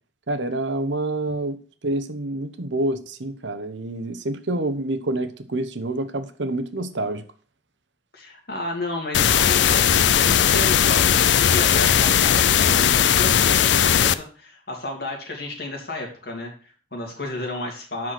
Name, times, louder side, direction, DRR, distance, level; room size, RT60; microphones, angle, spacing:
voice 1, 0.3-7.2, right 2 dB, 85° right, 1.0 m, -27 dB
voice 2, 8.1-18.1, left 2 dB, 60° left, 2.9 m, -32 dB
sound 1, 9.1-14.1, left 9 dB, 80° left, 0.5 m, -18 dB
7.6 x 6.1 x 5.8 m
head